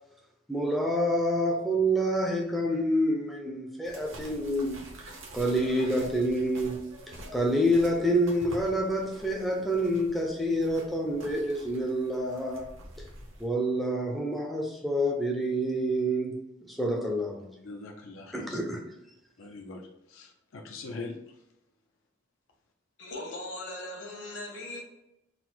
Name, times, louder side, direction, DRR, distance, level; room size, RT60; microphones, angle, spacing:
voice 1, 0.5-4.8 5.3-6.8 7.3-12.7 13.4-17.5 18.3-18.8, equal, ahead, 0.4 m, -27 dB
sound 1, 3.8-13.5, right 1 dB, 80° right, 0.9 m, -47 dB
voice 2, 17.6-18.6 19.4-19.8 20.1-20.3 20.5-21.1, left 3 dB, 85° left, 0.5 m, -41 dB
voice 3, 23.0-24.8, left 2 dB, 65° left, 1.1 m, -39 dB
3.9 x 2.1 x 4.4 m
head